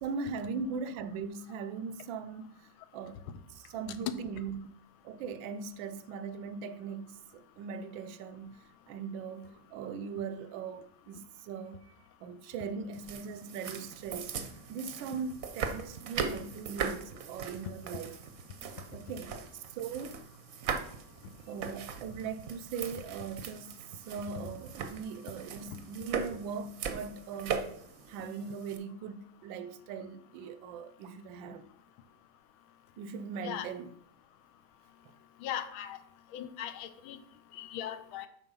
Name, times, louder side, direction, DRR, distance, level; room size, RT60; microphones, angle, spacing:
voice 1, 0.0-3.2 3.5-4.7 5.0-11.9 12.2-18.2 18.9-20.2 21.5-27.8 28.1-31.7 33.0-33.9 35.0-35.1, right 5 dB, 75° right, 1.3 m, -40 dB
sound 1, 12.9-28.8, right 6 dB, 60° right, 0.9 m, -40 dB
voice 2, 35.4-36.0 36.3-37.2 37.5-38.3, left 10 dB, 85° left, 1.5 m, -39 dB
7.9 x 4.7 x 5.4 m
omnidirectional pair, 2.2 m